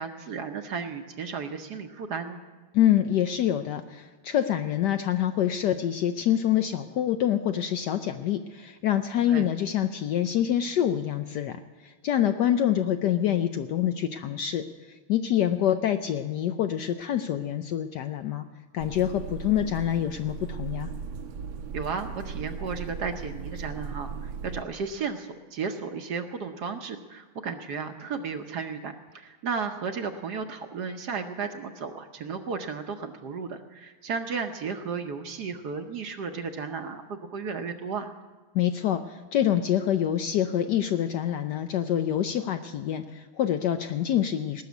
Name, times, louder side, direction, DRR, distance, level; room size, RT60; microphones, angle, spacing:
voice 1, 0.0-2.4 9.3-9.5 21.7-38.1, right 5 dB, 60° right, 6 dB, 1.2 m, -34 dB
voice 2, 2.7-14.6 15.1-18.4 18.7-20.9 38.5-44.6, left 10 dB, 75° left, 8 dB, 1.0 m, -26 dB
sound 1, 18.8-24.6, right 6 dB, 80° right, 1.7 m, -37 dB
19.0 x 6.7 x 9.3 m, 1.3 s
omnidirectional pair, 2.3 m